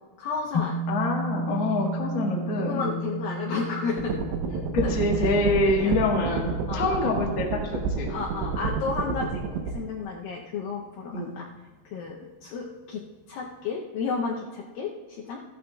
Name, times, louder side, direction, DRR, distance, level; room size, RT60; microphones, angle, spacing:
voice 1, 0.2-0.8 2.0-2.1 2.6-4.1 4.5-5.9 6.7-6.8 8.1-11.5 11.9-15.4, left 4 dB, 80° left, -1 dB, 2.1 m, -33 dB
sound 1, 0.5-9.0, right 1 dB, 10° left, 2.1 m, -34 dB
voice 2, 0.9-3.0 4.7-8.1 11.1-11.3, left 2 dB, 65° left, -2 dB, 1.2 m, -26 dB
sound 2, 4.0-9.7, right 5 dB, 85° right, 3.2 m, -29 dB
15.5 x 11.5 x 2.3 m, 1.4 s
omnidirectional pair, 4.9 m